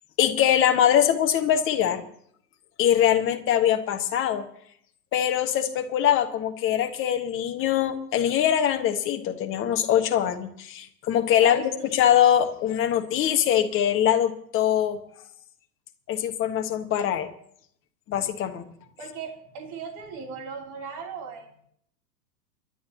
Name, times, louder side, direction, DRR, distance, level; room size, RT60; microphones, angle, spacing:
voice 1, 0.2-2.0 2.8-4.4 5.1-15.0 16.1-17.3 18.1-18.7, left 10 dB, 25° left, 5 dB, 1.5 m, -23 dB
voice 2, 11.4-12.1 19.0-21.5, right 5 dB, 35° right, 1 dB, 3.2 m, -38 dB
29.0 x 11.5 x 2.9 m, 0.66 s
figure-of-eight pair, 105°, 50 cm